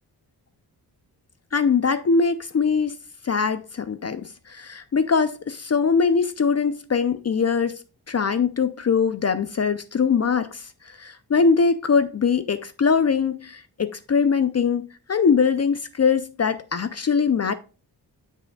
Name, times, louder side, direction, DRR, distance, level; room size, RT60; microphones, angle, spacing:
voice 1, 1.5-3.0 3.2-7.8 8.1-17.5, left 5 dB, 40° left, 0.5 m, -22 dB
7.8 x 7.0 x 2.2 m
wide cardioid pair, 105°, 40 cm